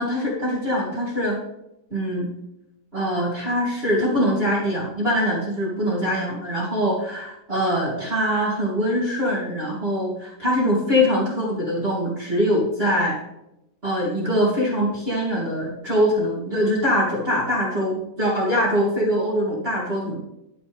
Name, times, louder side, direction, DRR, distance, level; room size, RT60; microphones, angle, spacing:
voice 1, 0.0-1.4 1.9-2.3 2.9-13.1 13.8-20.2, equal, 25° right, -6 dB, 1.3 m, -23 dB
11.0 x 9.8 x 3.5 m, 0.88 s
omnidirectional pair, 5.5 m